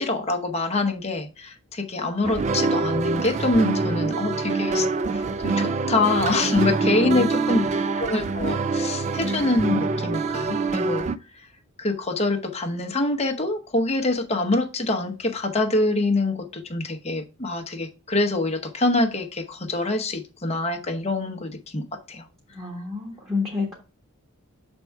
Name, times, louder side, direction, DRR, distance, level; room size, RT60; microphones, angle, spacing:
voice 1, 0.0-4.9 5.1-7.6 8.0-11.1 11.8-21.8 22.1-22.2, left 2 dB, 30° left, 4 dB, 0.9 m, -25 dB
sound 1, 2.2-11.2, right 3 dB, 30° right, 0.3 m, -25 dB
voice 2, 6.8-7.7 22.5-23.7, left 3 dB, 15° right, -4 dB, 1.4 m, -29 dB
6.7 x 3.6 x 4.5 m, 0.34 s
head